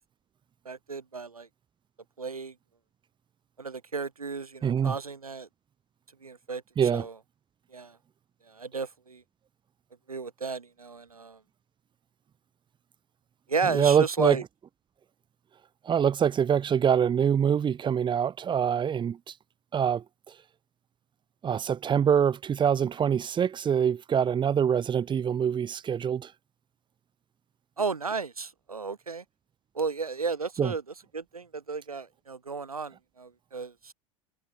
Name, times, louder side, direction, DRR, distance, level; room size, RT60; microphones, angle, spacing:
voice 1, 0.7-1.5 2.2-2.5 3.6-5.5 6.2-6.6 6.9-7.1 7.7-8.0 8.5-9.2 10.1-11.4 13.5-14.4 27.8-29.2 29.7-30.8 31.1-33.9, right 4 dB, 80° right, 7.4 m, -33 dB
voice 2, 4.6-5.0 6.8-7.1 13.6-14.4 15.8-19.3 19.7-20.0 21.4-26.3 30.6-30.7, right 8 dB, 25° right, 5.2 m, -24 dB
figure-of-eight pair, 80°, 18 cm